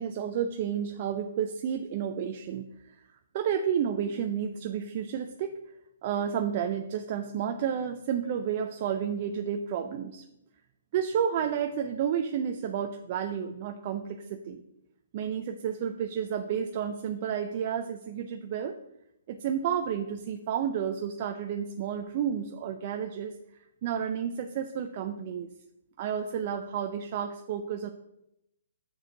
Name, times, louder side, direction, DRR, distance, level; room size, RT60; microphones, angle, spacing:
voice 1, 0.0-3.0 3.3-5.5 6.0-10.2 10.9-14.6 15.1-18.8 19.3-23.3 23.8-25.5 26.0-27.9, right 8 dB, 40° right, 5 dB, 0.5 m, -31 dB
6.3 x 6.3 x 3.9 m, 0.84 s
hypercardioid pair, 140°, 0 cm